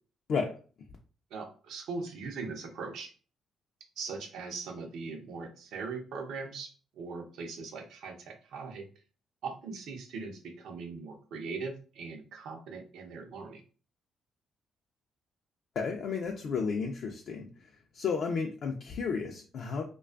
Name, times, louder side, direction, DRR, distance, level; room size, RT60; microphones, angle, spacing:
voice 1, 1.3-3.1 4.0-8.9 9.4-13.6, right 4 dB, 80° right, 4 dB, 0.5 m, -40 dB
voice 2, 15.8-17.5 17.9-19.8, left 5 dB, 65° left, 1 dB, 0.3 m, -32 dB
2.4 x 2.2 x 2.3 m, 0.39 s
cardioid pair, 90°, 0 cm